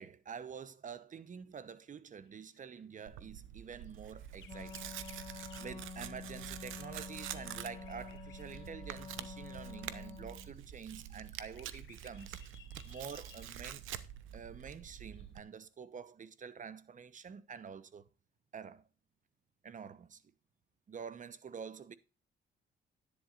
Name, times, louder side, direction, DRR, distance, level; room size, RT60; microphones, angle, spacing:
voice 1, 0.0-5.0 5.3-12.4 12.8-13.8 14.3-18.1 18.5-18.8 19.6-20.2 20.9-22.0, right 6 dB, 40° right, 1.0 m, -48 dB
sound 1, 2.2-2.8 3.4-8.8 9.1-15.3, left 9 dB, 70° left, 1.8 m, -63 dB
Tearing, 3.1-15.4, right 11 dB, 85° right, 0.8 m, -47 dB
Wind instrument woodwind instrument, 4.4-10.6, left 6 dB, 25° left, 0.4 m, -49 dB
10.5 x 10.5 x 2.5 m
cardioid pair, 90°, 20 cm